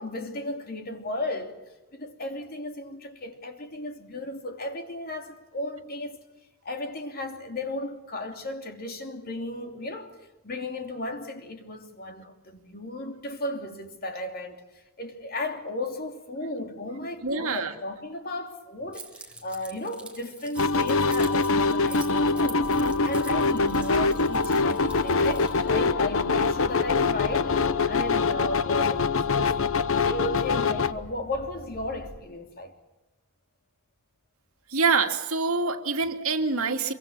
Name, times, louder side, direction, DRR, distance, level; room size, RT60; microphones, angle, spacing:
voice 1, 0.0-1.5 1.9-6.2 6.6-10.2 10.4-22.7 23.0-29.5 29.9-32.7, left 2 dB, 45° left, 2.9 m, -35 dB
voice 2, 17.2-17.7 34.7-36.9, right 4 dB, 70° right, 2.3 m, -25 dB
Keys jangling, 18.9-25.7, right 3 dB, 5° right, 3.0 m, -45 dB
sound 1, 20.6-30.9, left 4 dB, 65° left, 0.9 m, -24 dB
sound 2, 22.6-32.2, equal, 45° right, 3.1 m, -44 dB
26.0 x 24.0 x 7.3 m
head